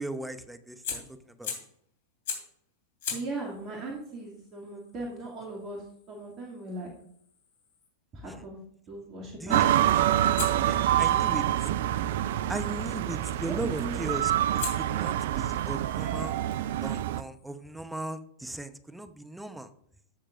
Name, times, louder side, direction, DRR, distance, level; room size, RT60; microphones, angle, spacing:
voice 1, 0.0-1.5 9.4-9.6 10.6-11.7 12.5-16.4 16.8-19.7, right 2 dB, 5° right, 11 dB, 0.8 m, -38 dB
Fire, 0.8-1.8 2.2-2.6 3.0-7.9 10.3-12.5 13.8-14.1 14.6-18.0, left 6 dB, 65° left, 3.1 m, -43 dB
voice 2, 3.1-6.9 8.1-8.6 8.9-9.7 13.5-14.1, right 2 dB, 35° right, -2 dB, 2.4 m, -38 dB
sound 1, 9.5-17.2, right 12 dB, 65° right, 0.4 m, -26 dB
13.5 x 6.5 x 2.5 m, 0.68 s
hypercardioid pair, 95°, 0 cm